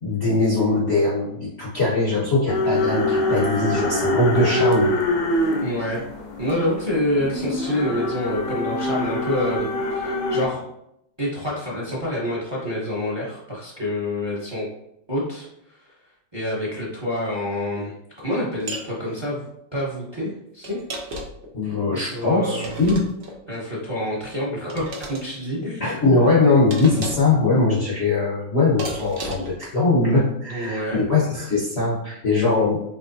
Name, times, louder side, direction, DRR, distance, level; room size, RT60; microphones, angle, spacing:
voice 1, 0.0-4.9 21.5-23.1 25.8-32.8, left 3 dB, 50° left, -6 dB, 0.8 m, -21 dB
sound 1, 2.5-10.5, left 1 dB, 75° left, 1.4 m, -24 dB
voice 2, 5.6-6.0 6.4-10.6 11.2-14.7 15.1-15.9 16.3-20.8 22.1-22.8 23.5-25.8 30.5-31.0, left 1 dB, 20° right, -5 dB, 0.8 m, -27 dB
sound 2, 18.7-18.9 20.6-21.5 22.6-23.4 24.7-25.2 26.7-27.4 28.8-29.6, right 1 dB, 55° right, 0.6 m, -33 dB
4.9 x 3.1 x 2.6 m, 0.80 s
omnidirectional pair, 2.0 m